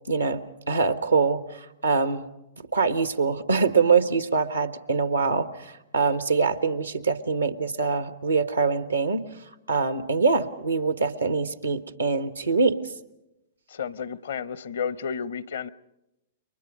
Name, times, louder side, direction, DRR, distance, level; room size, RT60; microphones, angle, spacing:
voice 1, 0.1-2.2 2.6-9.2 9.7-12.8, right 4 dB, 90° right, 1.3 m, -24 dB
voice 2, 13.7-15.7, left 6 dB, 70° left, 0.8 m, -32 dB
30.0 x 23.5 x 5.3 m
figure-of-eight pair, 105°, 0 cm